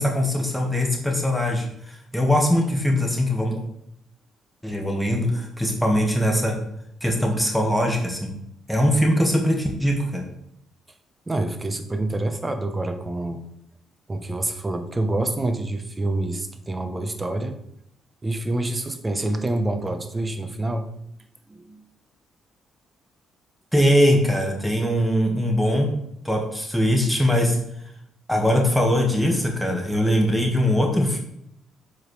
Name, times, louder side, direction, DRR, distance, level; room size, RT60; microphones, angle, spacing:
voice 1, 0.0-3.5 4.6-6.5 7.0-8.3 8.7-10.2 23.7-25.9 26.2-27.6 28.3-31.2, equal, 5° left, 1 dB, 1.6 m, -21 dB
voice 2, 11.3-13.5 14.1-17.6 18.2-20.9 21.5-21.8, right 2 dB, 20° right, 7 dB, 0.9 m, -27 dB
7.0 x 4.9 x 3.2 m, 0.75 s
supercardioid pair, 60°, 0 cm